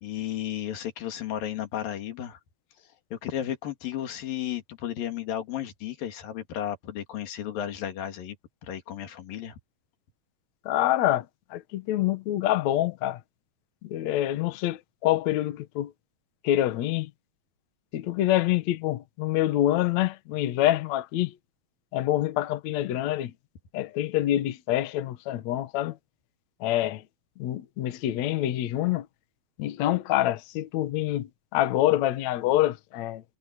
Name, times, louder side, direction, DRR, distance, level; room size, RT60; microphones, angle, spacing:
voice 1, 0.0-2.4 2.8-8.4 8.6-9.6, left 11 dB, 60° left, 3.9 m, -34 dB
voice 2, 10.6-13.2 13.8-15.9 16.4-17.1 17.9-21.3 21.9-23.3 23.7-26.0 26.6-27.0 27.4-29.0 29.6-33.2, left 14 dB, 75° left, 1.6 m, -26 dB
omnidirectional pair, 5.0 m